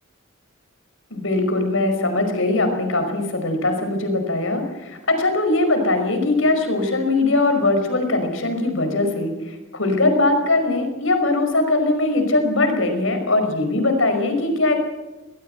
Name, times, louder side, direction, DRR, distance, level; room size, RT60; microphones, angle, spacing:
voice 1, 1.1-14.7, left 2 dB, 85° left, 6 dB, 5.4 m, -21 dB
22.0 x 19.5 x 7.9 m, 1.1 s
head